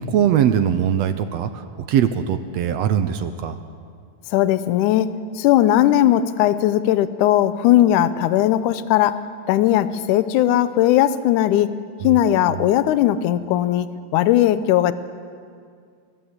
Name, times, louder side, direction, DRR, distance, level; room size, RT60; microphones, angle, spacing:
voice 1, 0.0-3.6 12.0-12.2, right 9 dB, 70° right, 10 dB, 1.7 m, -21 dB
voice 2, 4.3-9.2 9.5-11.7 12.0-13.9 14.1-14.9, left 12 dB, 80° left, 13 dB, 2.2 m, -18 dB
29.0 x 15.0 x 8.1 m, 2.2 s
omnidirectional pair, 3.6 m